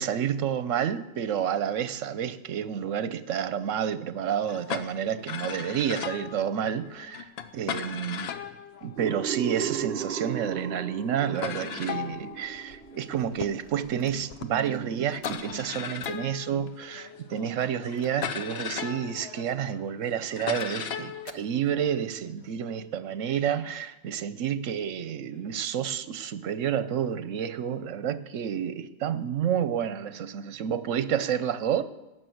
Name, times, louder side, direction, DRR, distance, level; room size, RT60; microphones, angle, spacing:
voice 1, 0.0-8.3 8.8-31.8, right 9 dB, 75° right, 1.1 m, -30 dB
sound 1, 4.5-9.8 10.5-10.6 10.8-10.9 11.4-22.5, left 8 dB, 60° left, 0.9 m, -38 dB
sound 2, 9.0-13.7, right 8 dB, 50° right, 0.9 m, -36 dB
sound 3, 13.6-14.2 14.6-14.8 15.2-15.5 16.0-16.2 17.8-18.6 19.0-19.1 20.2-20.9 21.3-21.5, left 8 dB, 90° left, 1.2 m, -51 dB
17.5 x 6.3 x 7.8 m
omnidirectional pair, 1.3 m